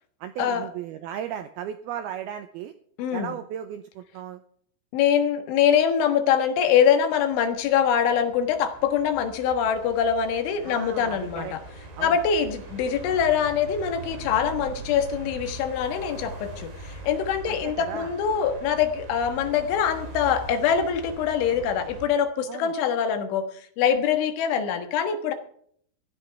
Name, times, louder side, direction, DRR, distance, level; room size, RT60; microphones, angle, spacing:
voice 1, 0.2-2.7 3.1-4.4 10.6-11.5 12.0-12.2 17.5-18.1 22.5-22.7, right 10 dB, 90° right, 8 dB, 2.2 m, -36 dB
voice 2, 3.0-3.3 4.9-11.6 12.0-25.3, left 8 dB, 85° left, 7 dB, 3.9 m, -24 dB
sound 1, 7.1-22.1, right 3 dB, 65° right, 6.3 m, -41 dB
16.0 x 15.0 x 3.4 m, 0.63 s
omnidirectional pair, 5.4 m